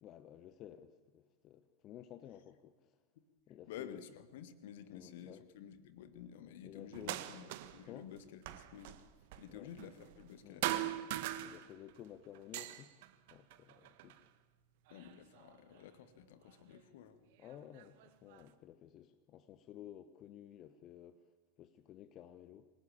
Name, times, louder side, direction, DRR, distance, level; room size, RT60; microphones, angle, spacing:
voice 1, 0.0-3.0 3.5-4.0 4.9-5.4 6.4-7.4 7.8-8.1 9.5-9.8 10.4-10.7 11.4-12.9 13.3-14.3 17.4-22.7, left 11 dB, 35° left, 1.1 m, -54 dB
voice 2, 3.7-9.0 9.4-11.0 14.9-17.2, left 9 dB, 55° left, 1.8 m, -52 dB
sound 1, 6.9-7.9 8.1-10.4 10.6-12.0 12.3-14.2 14.9-15.8 16.7-16.8 17.4-18.5, right 14 dB, 50° right, 1.5 m, -42 dB
26.5 x 18.0 x 8.7 m
figure-of-eight pair, 90°, 0 cm